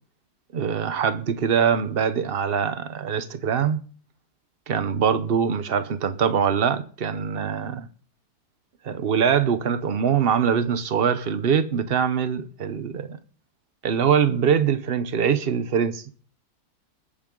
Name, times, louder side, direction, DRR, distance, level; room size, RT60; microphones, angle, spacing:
voice 1, 0.5-3.8 4.7-7.9 8.8-13.2 13.8-16.1, right 7 dB, 85° right, 0.5 m, -23 dB
21.0 x 8.7 x 3.8 m
omnidirectional pair, 2.2 m